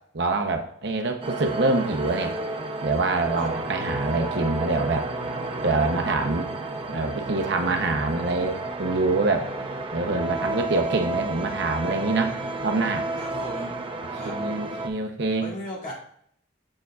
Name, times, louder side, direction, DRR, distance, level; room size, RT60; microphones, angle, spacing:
voice 1, 0.1-2.3 2.8-5.0 5.6-6.5 6.9-9.5 9.9-12.3 12.6-13.1 14.1-15.5, right 3 dB, 60° right, 5 dB, 0.8 m, -25 dB
sound 1, 1.2-14.9, right 2 dB, 25° right, 0.7 m, -31 dB
voice 2, 13.2-13.7 14.2-14.4 15.4-15.9, left 1 dB, 40° left, -5 dB, 2.4 m, -36 dB
7.5 x 7.0 x 2.4 m, 0.68 s
head